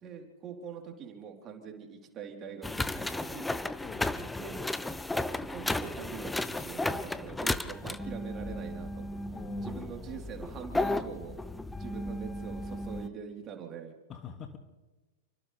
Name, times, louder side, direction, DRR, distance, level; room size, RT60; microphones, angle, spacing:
voice 1, 0.0-3.5 4.4-4.6 5.3-9.3 9.6-11.4 11.7-14.0, right 7 dB, 30° right, 1 dB, 3.9 m, -44 dB
sound 1, 2.6-13.1, left 2 dB, 5° left, 0.8 m, -34 dB
voice 2, 3.8-4.2 6.5-6.7 7.8-8.0 9.3-10.3 14.1-14.6, left 6 dB, 25° left, 5 dB, 2.3 m, -46 dB
30.0 x 25.0 x 3.5 m, 1.2 s
figure-of-eight pair, 95°, 0 cm